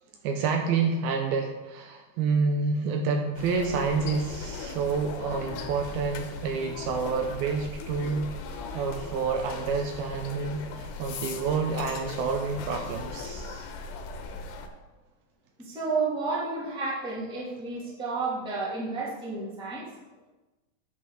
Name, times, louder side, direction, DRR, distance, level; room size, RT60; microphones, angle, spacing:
voice 1, 0.2-13.7, right 4 dB, 80° right, 3 dB, 2.3 m, -28 dB
sound 1, 3.4-14.7, left 4 dB, 90° left, 3.0 m, -38 dB
voice 2, 15.6-19.9, right 3 dB, ahead, -7 dB, 1.2 m, -31 dB
8.5 x 5.4 x 6.3 m, 1.1 s
omnidirectional pair, 4.7 m